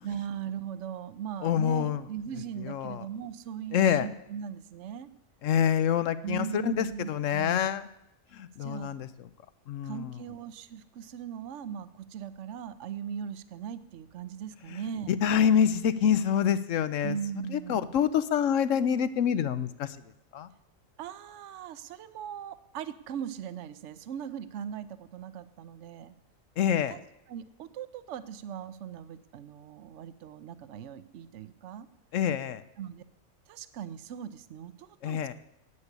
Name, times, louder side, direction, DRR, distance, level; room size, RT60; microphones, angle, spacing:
voice 1, 0.0-5.1 6.2-7.7 8.6-8.9 9.8-15.2 17.0-17.8 21.0-26.1 26.9-27.0 27.3-31.9 32.8-33.0 33.5-35.3, right 8 dB, 65° right, 14 dB, 1.0 m, -39 dB
voice 2, 1.4-2.0 2.6-3.0 3.7-4.1 5.4-7.9 8.3-9.1 9.7-10.1 15.1-17.1 17.5-19.9 20.3-20.5 26.6-26.9 32.1-32.6 35.0-35.3, left 8 dB, 75° left, 13 dB, 1.0 m, -26 dB
9.8 x 8.5 x 8.2 m, 0.84 s
omnidirectional pair, 1.4 m